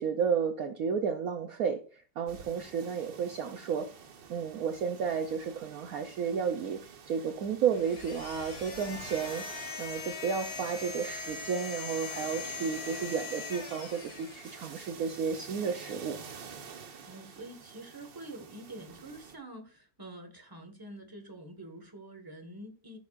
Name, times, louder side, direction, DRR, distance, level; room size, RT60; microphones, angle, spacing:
voice 1, 0.0-3.9 4.3-6.8 7.1-16.2, right 6 dB, 65° right, 1.1 m, -32 dB
sound 1, 2.3-19.4, right 6 dB, 85° right, 2.1 m, -49 dB
sound 2, 7.7-15.1, left 4 dB, 40° left, 1.6 m, -41 dB
voice 2, 17.0-23.0, right 1 dB, 15° right, 1.6 m, -46 dB
14.5 x 7.0 x 2.5 m
omnidirectional pair, 1.9 m